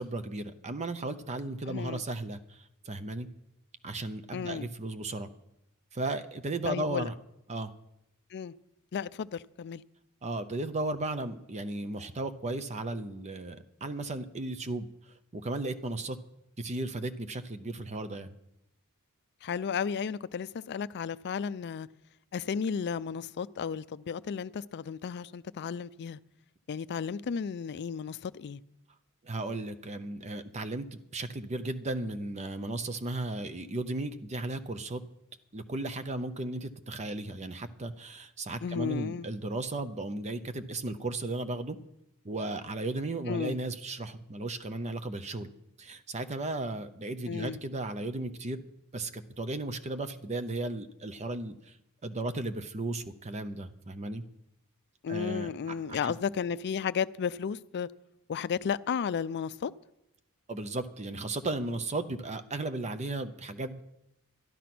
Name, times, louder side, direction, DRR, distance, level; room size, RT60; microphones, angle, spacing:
voice 1, 0.0-3.3 3.8-5.3 5.9-7.1 7.5-7.7 10.2-14.9 15.3-16.2 16.6-18.3 29.2-35.0 35.5-41.8 42.2-45.5 45.8-48.6 48.9-51.8 52.0-54.2 55.1-55.5 55.9-56.1 60.5-63.8, right 2 dB, 30° right, 0.6 m, -35 dB
voice 2, 1.7-2.0 4.3-4.7 6.7-7.1 8.3-8.5 8.9-9.8 19.4-21.9 22.3-26.2 26.7-28.6 38.6-39.3 43.3-43.6 47.3-47.6 55.0-57.9 58.3-59.7, left 6 dB, 50° left, 0.4 m, -33 dB
12.0 x 11.0 x 6.0 m
head